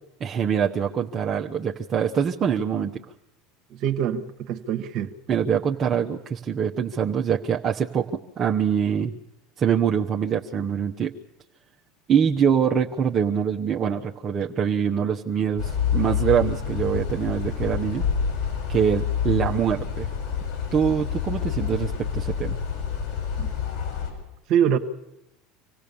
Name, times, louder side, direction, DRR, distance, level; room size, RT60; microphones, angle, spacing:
voice 1, 0.2-2.9 5.3-9.1 9.6-11.1 12.1-18.0 18.7-20.1 20.7-22.6, right 7 dB, 35° right, 0 dB, 1.0 m, -24 dB
voice 2, 3.8-5.1 23.4-23.5 24.5-24.8, right 9 dB, 55° right, 7 dB, 1.5 m, -24 dB
sound 1, 15.6-24.1, left 7 dB, 55° left, 8.0 m, -28 dB
26.0 x 17.0 x 7.0 m, 0.89 s
hypercardioid pair, 85°, 0 cm